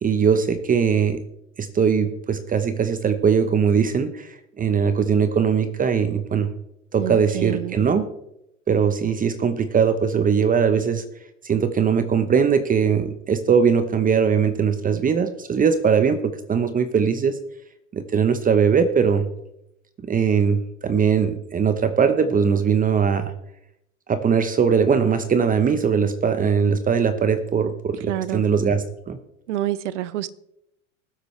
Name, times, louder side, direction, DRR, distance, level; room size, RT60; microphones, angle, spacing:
voice 1, 0.0-1.2 1.6-6.5 6.9-8.1 8.7-11.0 11.4-17.4 17.9-19.3 20.0-23.3 24.1-29.2, right 6 dB, 25° right, 1.0 m, -20 dB
voice 2, 7.0-7.8 28.1-28.4 29.5-30.3, right 14 dB, 75° right, 0.8 m, -27 dB
20.0 x 8.1 x 3.3 m
hypercardioid pair, 95°, 36 cm